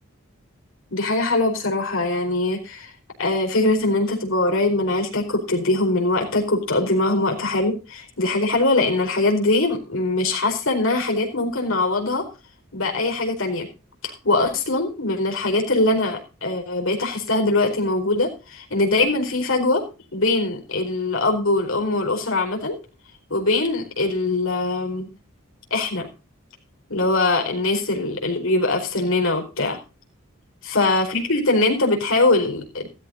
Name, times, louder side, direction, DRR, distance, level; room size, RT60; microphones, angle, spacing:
voice 1, 0.9-2.9 3.2-12.2 12.7-13.7 14.0-19.8 20.1-22.7 23.3-25.1 25.7-26.1 26.9-29.8 30.7-32.9, left 2 dB, 75° left, 2 dB, 4.5 m, -22 dB
15.0 x 14.5 x 2.6 m, 0.31 s
head